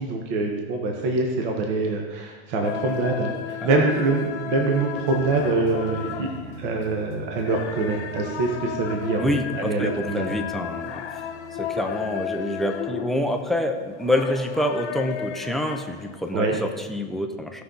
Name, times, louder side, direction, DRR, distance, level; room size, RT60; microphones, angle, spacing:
voice 1, 0.0-6.3 6.6-10.3 16.3-16.6, right 3 dB, 50° right, 2 dB, 1.3 m, -25 dB
sound 1, 2.6-16.6, left 9 dB, 85° left, 1.4 m, -34 dB
voice 2, 3.6-4.0 9.2-11.0 11.6-17.6, left 1 dB, ahead, 5 dB, 0.4 m, -27 dB
sound 2, 4.9-12.1, right 4 dB, 75° right, 3.2 m, -42 dB
16.5 x 5.7 x 3.9 m, 1.4 s
supercardioid pair, 145°, 33 cm